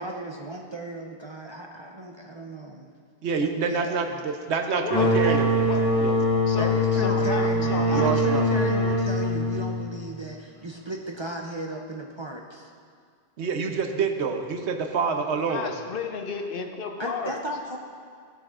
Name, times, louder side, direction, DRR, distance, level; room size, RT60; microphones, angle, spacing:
voice 1, 0.0-2.8 3.4-4.3 6.6-12.7 17.0-17.8, right 1 dB, 40° right, 1 dB, 0.4 m, -35 dB
voice 2, 3.2-5.7 6.0-6.2 7.9-8.4 13.4-15.7, right 5 dB, 80° right, 5 dB, 1.0 m, -27 dB
voice 3, 4.7-5.8 6.5-8.2 15.5-17.4, left 5 dB, 60° left, 4 dB, 0.8 m, -33 dB
sound 1, 4.9-10.3, left 1 dB, 5° left, 1.5 m, -23 dB
14.0 x 6.9 x 2.4 m, 2.1 s
omnidirectional pair, 1.1 m